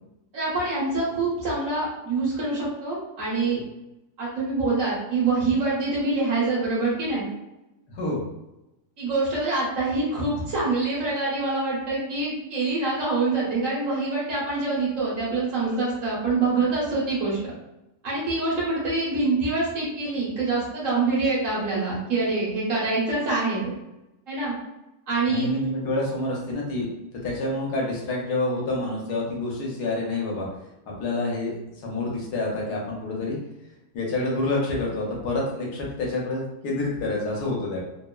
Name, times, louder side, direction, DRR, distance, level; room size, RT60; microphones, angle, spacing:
voice 1, 0.3-3.6 4.2-7.2 9.0-17.4 18.0-23.7 24.3-24.5 25.1-25.5, right 3 dB, 55° right, -7 dB, 1.4 m, -25 dB
voice 2, 7.9-8.2 25.2-26.9 27.2-30.5 31.0-31.6 31.8-33.4 33.9-37.8, left 2 dB, 80° left, -2 dB, 1.3 m, -27 dB
3.3 x 2.0 x 2.2 m, 0.93 s
omnidirectional pair, 1.7 m